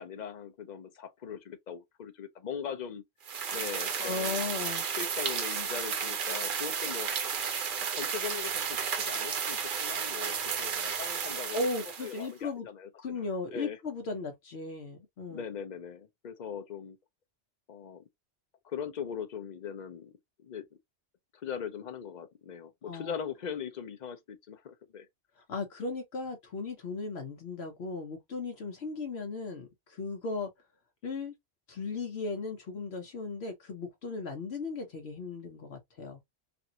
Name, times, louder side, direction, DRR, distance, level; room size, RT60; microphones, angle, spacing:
voice 1, 0.0-3.0 3.5-4.5 4.9-7.1 7.9-11.7 12.0-13.3 13.5-13.8 15.3-17.0 17.7-18.0 18.6-20.7 21.4-25.1, left 7 dB, 50° left, 0.6 m, -40 dB
sound 1, 3.3-12.3, right 6 dB, 55° right, 0.7 m, -33 dB
voice 2, 4.0-4.9 11.5-12.7 13.0-15.4 22.9-23.2 25.4-30.5 31.0-31.3 31.7-36.2, left 3 dB, 65° left, 1.0 m, -36 dB
3.4 x 2.5 x 2.7 m
omnidirectional pair, 1.2 m